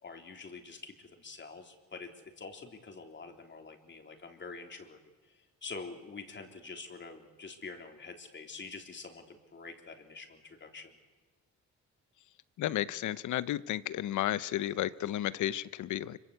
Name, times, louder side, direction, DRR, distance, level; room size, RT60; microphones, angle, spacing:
voice 1, 0.0-5.0 5.3-11.0, left 4 dB, 40° left, 5 dB, 3.5 m, -46 dB
voice 2, 12.6-16.2, left 13 dB, 75° left, 18 dB, 0.9 m, -33 dB
25.0 x 24.0 x 8.3 m, 1.3 s
cardioid pair, 90°, 30 cm